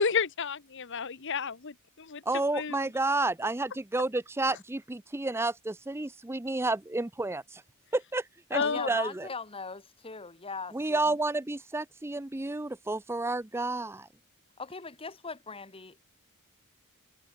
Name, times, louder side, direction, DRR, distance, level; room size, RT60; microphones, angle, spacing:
voice 1, 0.0-2.2 2.5-2.9 8.5-8.9, left 5 dB, 55° left, 1.1 m, -31 dB
voice 2, 2.3-7.6 7.9-9.3 10.7-14.1, right 2 dB, 10° right, 0.5 m, -31 dB
voice 3, 8.6-11.2 14.6-16.0, left 4 dB, 25° left, 1.5 m, -40 dB
head